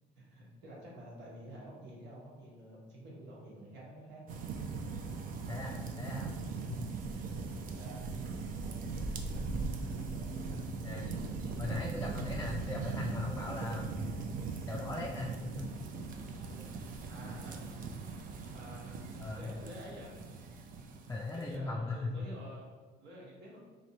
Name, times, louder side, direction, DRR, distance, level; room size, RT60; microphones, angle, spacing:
voice 1, 0.2-4.2 7.7-8.1 9.3-9.5 9.8-10.1 10.5-10.6 17.1-17.6 18.5-20.2 21.3-23.6, right 1 dB, 90° right, -4 dB, 1.3 m, -49 dB
sound 1, 4.3-21.6, right 4 dB, 55° right, 0.5 m, -39 dB
voice 2, 5.5-6.3 6.7-6.8 10.8-11.0 11.6-14.1 14.6-15.7 19.2-19.5 21.1-22.2, left 2 dB, 15° left, -2 dB, 0.3 m, -39 dB
3.1 x 2.6 x 4.0 m, 1.4 s
cardioid pair, 110°, 17 cm